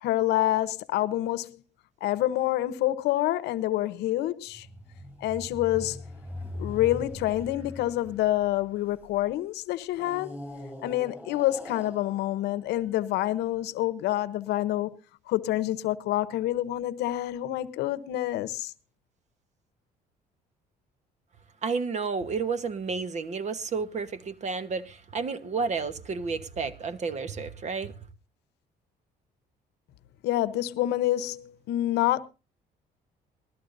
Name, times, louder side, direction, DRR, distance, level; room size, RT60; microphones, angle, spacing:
voice 1, 0.0-1.6 2.0-4.7 5.2-6.0 6.6-10.3 10.8-15.0 15.3-18.7 30.2-32.2, left 14 dB, 85° left, 0.8 m, -27 dB
sound 1, 4.5-9.2 9.9-13.3, left 2 dB, 10° right, 7.9 m, -42 dB
voice 2, 21.6-27.9, right 5 dB, 45° right, 1.2 m, -31 dB
20.0 x 13.5 x 2.6 m
cardioid pair, 110°, 17 cm